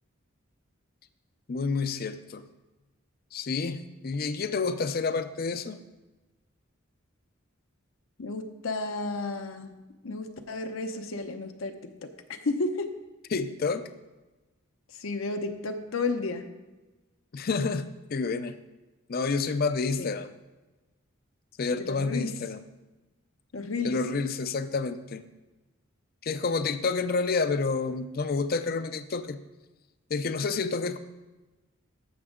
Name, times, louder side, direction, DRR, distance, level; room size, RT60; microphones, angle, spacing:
voice 1, 1.5-2.4 3.3-5.8 13.3-13.9 17.3-18.6 19.1-20.3 21.6-22.6 23.8-25.2 26.2-29.4 30.1-31.0, left 4 dB, 45° left, 11 dB, 0.5 m, -29 dB
voice 2, 8.2-9.7 10.0-11.7 12.0-12.1 12.4-12.9 14.9-16.5 20.0-20.1 21.8-22.3 23.5-23.9, left 3 dB, 75° left, 6 dB, 0.8 m, -32 dB
14.5 x 6.1 x 3.7 m, 1.1 s
head